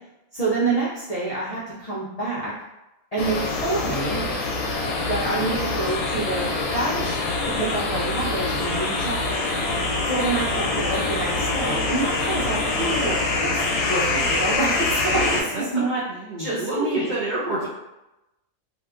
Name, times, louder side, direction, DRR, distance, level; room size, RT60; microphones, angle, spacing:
voice 1, 0.3-2.5 3.1-4.2 5.1-7.2 7.6-9.4 10.0-16.0 16.4-17.1, right 3 dB, 55° left, -8 dB, 0.4 m, -27 dB
sound 1, 3.2-15.4, left 3 dB, 90° left, 1.0 m, -25 dB
voice 2, 15.1-17.7, right 1 dB, 85° right, -6 dB, 0.4 m, -29 dB
2.7 x 2.4 x 2.3 m, 0.94 s
omnidirectional pair, 1.5 m